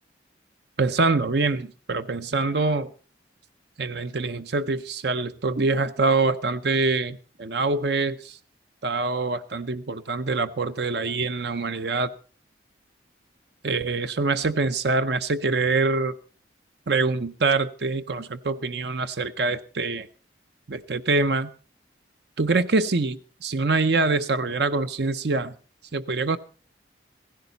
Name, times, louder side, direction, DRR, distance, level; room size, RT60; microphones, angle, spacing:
voice 1, 0.8-2.9 3.8-8.4 8.8-12.1 13.6-16.1 16.9-20.1 20.7-21.5 22.4-25.5 25.9-26.4, right 3 dB, 65° right, 10 dB, 0.7 m, -25 dB
16.5 x 15.0 x 4.0 m, 0.39 s
head